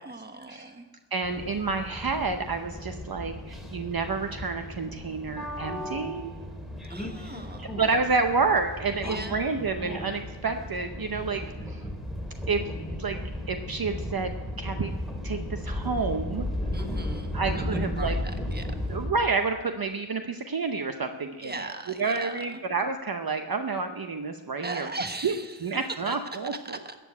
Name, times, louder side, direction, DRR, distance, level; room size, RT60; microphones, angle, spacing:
voice 1, 0.0-0.9 6.9-7.8 9.0-9.5 16.7-19.0 21.4-22.6 24.6-25.8 26.1-26.2 26.5-27.0, right 2 dB, 20° right, 6 dB, 1.3 m, -39 dB
voice 2, 1.1-6.3 7.8-11.8 12.5-12.6 13.0-13.2 13.5-14.9 15.2-16.5 17.3-18.1 18.9-21.7 22.0-24.9 25.2-25.4 25.6-26.8, right 4 dB, 50° right, 6 dB, 0.8 m, -29 dB
sound 1, 1.2-19.1, left 1 dB, ahead, 2.3 m, -35 dB
14.5 x 7.2 x 9.4 m, 1.2 s
wide cardioid pair, 80°, 45 cm